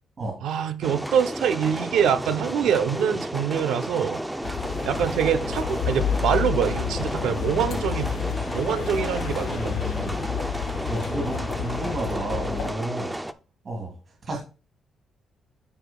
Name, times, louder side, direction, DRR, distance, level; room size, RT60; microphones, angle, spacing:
voice 1, 0.4-4.2 4.8-9.8, right 8 dB, 90° right, 0.7 m, -25 dB
sound 1, 0.8-13.3, right 1 dB, 5° right, 0.5 m, -32 dB
sound 2, 4.4-12.7, left 7 dB, 85° left, 2.2 m, -30 dB
voice 2, 9.5-10.2 10.9-13.1 13.7-13.9 14.2-14.4, right 2 dB, 40° right, 2.0 m, -32 dB
13.5 x 5.0 x 2.3 m
cardioid pair, 140°, 0 cm